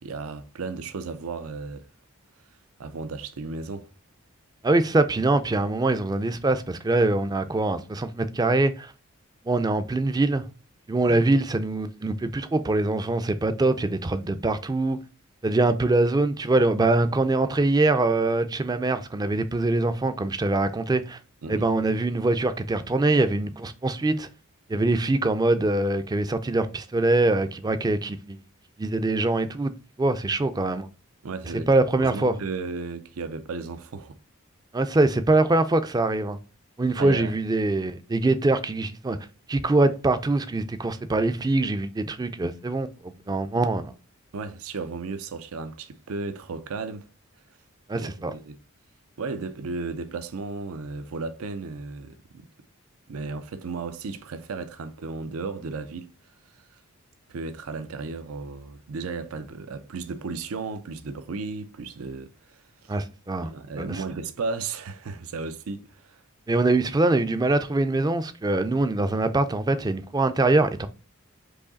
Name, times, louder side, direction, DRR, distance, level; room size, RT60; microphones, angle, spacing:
voice 1, 0.0-1.9 2.8-3.9 21.4-21.7 31.2-31.7 32.0-34.2 37.0-37.3 44.3-47.1 47.9-48.6 49.2-52.5 53.1-56.1 57.3-62.9 63.4-66.2, right 4 dB, 80° right, 0.5 m, -34 dB
voice 2, 4.6-8.9 9.5-10.4 10.9-15.0 15.4-21.2 21.5-24.3 24.7-28.4 28.8-29.7 30.0-30.9 31.7-32.3 34.7-36.4 36.8-39.2 39.5-43.9 47.9-48.3 62.9-63.5 63.8-64.0 66.5-70.9, right 2 dB, 20° right, 0.4 m, -23 dB
4.8 x 2.8 x 3.9 m
head